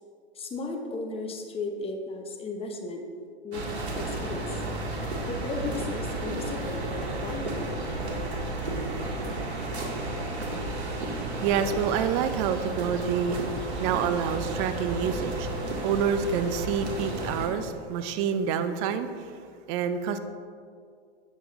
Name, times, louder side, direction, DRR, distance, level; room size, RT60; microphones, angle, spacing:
voice 1, 0.3-3.1 3.4-3.7 4.0-4.6 5.3-7.8, left 3 dB, 20° left, 3 dB, 1.1 m, -35 dB
sound 1, 3.5-17.5, right 2 dB, 85° right, 1.8 m, -32 dB
voice 2, 11.4-19.4 19.7-20.2, right 7 dB, 40° right, 9 dB, 0.7 m, -28 dB
9.1 x 7.1 x 3.7 m, 2.2 s
hypercardioid pair, 110°, 32 cm